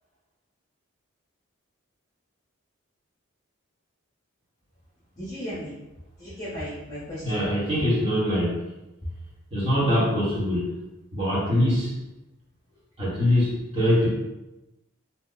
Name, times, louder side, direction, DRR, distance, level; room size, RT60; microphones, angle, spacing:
voice 1, 5.2-5.8 6.2-7.4, equal, 20° left, -10 dB, 0.9 m, -35 dB
voice 2, 7.2-8.6 9.5-10.7 11.1-11.9 13.0-14.1, left 1 dB, 25° right, -8 dB, 1.2 m, -23 dB
2.9 x 2.2 x 3.8 m, 0.99 s
head